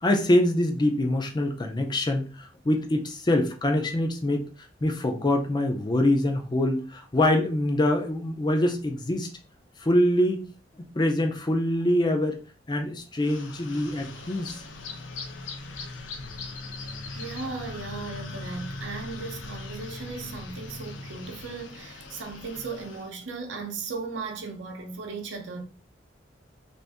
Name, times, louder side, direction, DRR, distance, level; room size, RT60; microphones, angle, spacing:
voice 1, 0.0-4.4 4.8-9.3 9.8-10.4 10.8-12.4 12.7-14.6, left 1 dB, 25° left, 0.5 m, -24 dB
sound 1, 13.2-23.1, left 3 dB, 90° left, 0.6 m, -40 dB
voice 2, 17.1-25.6, right 4 dB, 85° right, 0.7 m, -36 dB
2.6 x 2.6 x 3.4 m
head